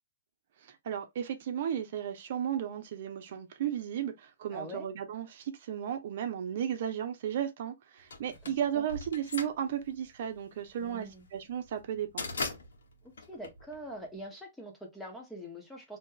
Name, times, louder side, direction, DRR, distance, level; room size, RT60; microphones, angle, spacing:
voice 1, 0.6-12.3, right 9 dB, 60° right, 0.8 m, -34 dB
voice 2, 4.5-4.9 8.7-8.8 10.8-11.3 13.3-16.0, equal, 5° left, 1.2 m, -44 dB
sound 1, 8.1-14.2, left 3 dB, 85° left, 1.2 m, -40 dB
2.9 x 2.5 x 3.8 m
hypercardioid pair, 135°, 0 cm